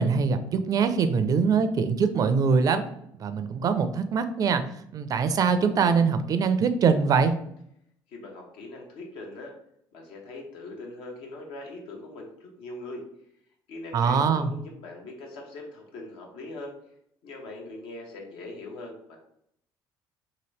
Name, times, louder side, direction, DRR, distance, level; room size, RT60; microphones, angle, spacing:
voice 1, 0.0-2.8 3.2-4.6 4.9-7.3 13.9-14.5, right 5 dB, 45° right, 10 dB, 0.4 m, -23 dB
voice 2, 8.1-9.5 9.9-13.0 13.7-16.7 17.2-19.2, left 2 dB, 80° left, 1 dB, 0.9 m, -41 dB
2.9 x 2.6 x 3.2 m, 0.72 s
cardioid pair, 100°, 9 cm